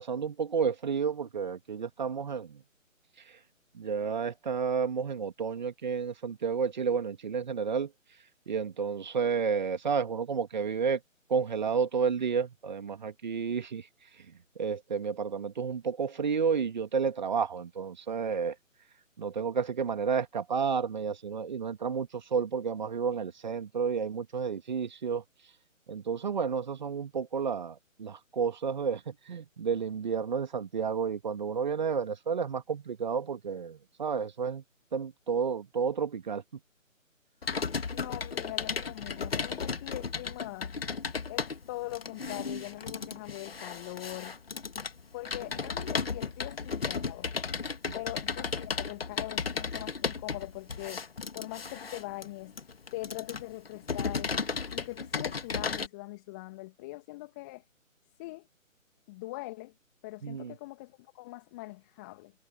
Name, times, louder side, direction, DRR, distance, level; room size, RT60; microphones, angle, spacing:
voice 1, 0.0-2.6 3.7-7.9 8.5-11.0 11.3-13.9 14.6-18.6 19.2-25.2 25.9-34.6 34.9-36.4 47.9-48.0 60.2-60.5, right 6 dB, 35° right, 2.4 m, -31 dB
Computer keyboard, 37.4-55.9, left 5 dB, 45° left, 2.4 m, -35 dB
voice 2, 37.9-40.8 41.3-44.4 45.1-47.3 47.9-51.1 51.3-52.5 52.9-54.3 54.7-57.6 58.2-58.5 59.1-59.7 60.0-62.3, left 21 dB, 15° left, 2.1 m, -42 dB
figure-of-eight pair, 150°, 40 cm